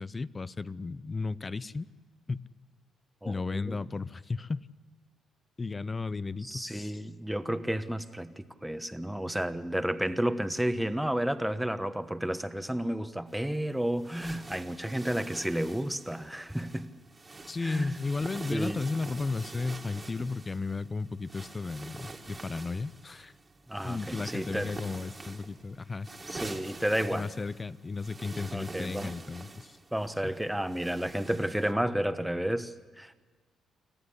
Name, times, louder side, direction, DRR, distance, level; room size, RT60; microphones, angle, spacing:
voice 1, 0.0-1.9 2.3-2.5 3.2-4.7 5.6-7.0 17.5-23.3 23.8-26.1 27.1-29.8, left 3 dB, 25° left, 18 dB, 0.6 m, -34 dB
voice 2, 3.2-3.8 6.4-16.9 17.6-17.9 18.5-18.8 23.7-24.7 26.3-27.3 28.5-29.1 29.9-33.2, right 1 dB, 5° right, 10 dB, 1.1 m, -31 dB
sound 1, 13.3-31.7, right 3 dB, 25° right, 2.1 m, -46 dB
26.0 x 14.5 x 10.0 m, 1.4 s
cardioid pair, 90°, 0 cm